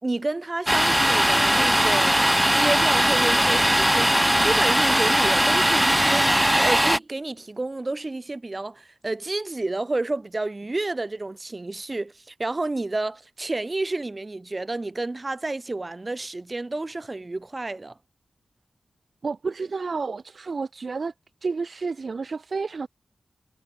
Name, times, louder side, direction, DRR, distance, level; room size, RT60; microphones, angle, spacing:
voice 1, 0.0-6.3 6.6-18.0, right 2 dB, 25° right, 2.9 m, -30 dB
Domestic sounds home sounds, 0.7-7.0, equal, 5° right, 0.4 m, -20 dB
voice 2, 19.2-21.1 21.4-22.9, right 4 dB, 45° right, 0.9 m, -30 dB
wide cardioid pair, 150°, 0 cm